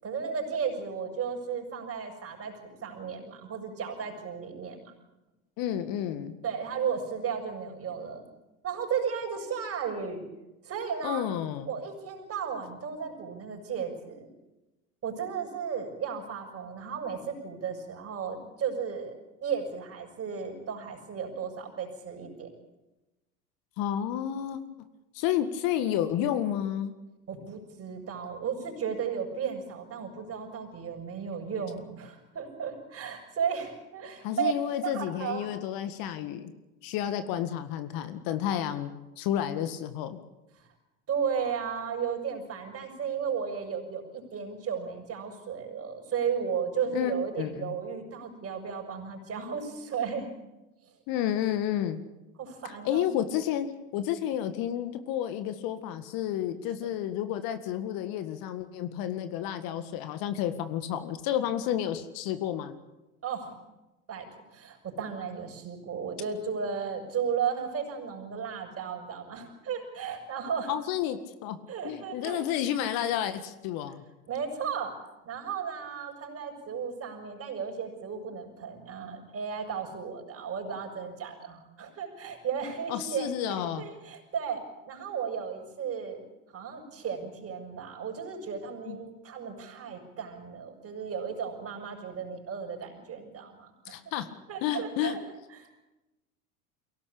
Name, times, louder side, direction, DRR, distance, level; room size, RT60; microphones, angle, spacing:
voice 1, 0.0-4.9 6.4-8.2 8.6-10.2 10.6-11.3 11.7-14.3 15.0-19.1 19.4-22.5 27.3-34.5 34.8-35.5 40.6-40.7 41.1-50.3 52.4-53.1 63.2-63.5 64.1-64.3 64.5-70.7 71.7-72.4 74.3-74.9 75.3-84.6 84.9-86.2 86.5-94.0 94.5-95.2 95.5-95.7, right 7 dB, 30° right, 3 dB, 7.0 m, -34 dB
voice 2, 5.6-6.4 11.0-11.7 23.8-24.6 25.1-26.9 34.2-36.5 36.8-38.9 39.2-40.2 46.9-47.7 51.1-52.0 52.6-62.8 70.7-71.6 71.8-74.0 82.9-83.8 88.8-89.0 93.9-94.3 94.6-95.2, left 11 dB, 50° left, 10 dB, 1.9 m, -31 dB
23.0 x 17.5 x 8.6 m, 1.0 s
hypercardioid pair, 90°, 44 cm